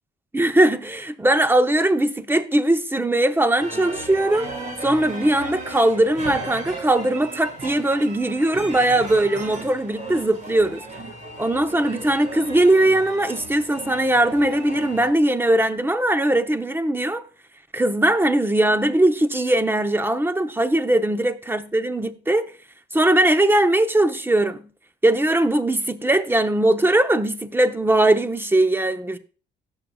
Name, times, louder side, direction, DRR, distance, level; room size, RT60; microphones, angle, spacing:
voice 1, 0.3-4.5 4.8-10.8 11.4-17.2 17.7-22.5 22.9-24.6 25.0-29.2, right 1 dB, 10° right, 0.8 m, -20 dB
sound 1, 3.6-15.1, right 2 dB, 40° right, 2.5 m, -36 dB
16.0 x 6.9 x 2.3 m
cardioid pair, 90°, 20 cm